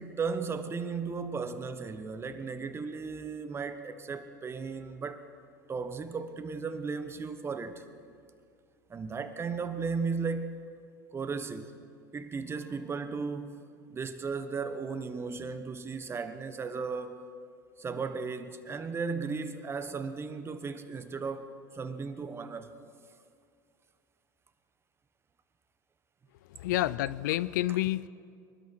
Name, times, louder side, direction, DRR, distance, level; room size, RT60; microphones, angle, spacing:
voice 1, 0.0-5.2 5.7-7.8 8.9-10.6 11.1-11.7 12.1-13.6 13.9-17.2 17.8-22.7, right 5 dB, 25° right, 1.2 m, -35 dB
voice 2, 26.5-28.1, left 15 dB, 75° left, 0.4 m, -29 dB
23.5 x 12.5 x 4.6 m
hypercardioid pair, 90°, 10 cm